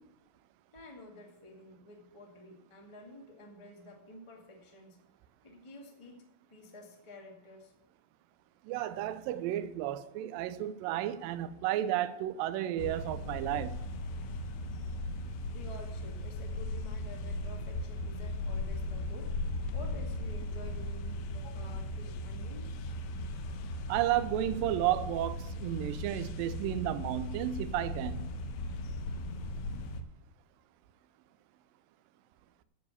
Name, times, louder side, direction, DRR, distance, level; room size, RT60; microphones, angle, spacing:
voice 1, 0.7-5.0 5.4-6.2 6.5-7.7 15.5-19.3 19.7-22.7, left 1 dB, 45° left, 0.4 m, -50 dB
voice 2, 8.7-13.8 23.9-28.2, right 12 dB, 85° right, 2.0 m, -32 dB
sound 1, 12.8-30.0, left 1 dB, 75° left, 2.3 m, -37 dB
14.5 x 4.8 x 8.3 m
omnidirectional pair, 4.6 m